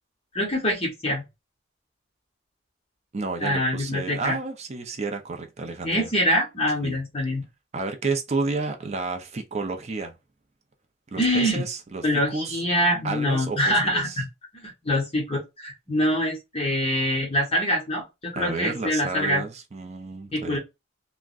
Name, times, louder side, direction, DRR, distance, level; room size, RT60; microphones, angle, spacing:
voice 1, 0.3-1.2 3.4-4.4 5.8-7.4 11.2-11.6 12.0-14.3 14.5-19.4 20.3-20.6, equal, 30° left, 1.1 m, -25 dB
voice 2, 3.1-6.1 6.8-7.0 7.7-10.1 11.1-12.6 13.0-14.2 18.4-20.6, right 3 dB, 35° right, 0.5 m, -31 dB
3.5 x 2.1 x 2.4 m
head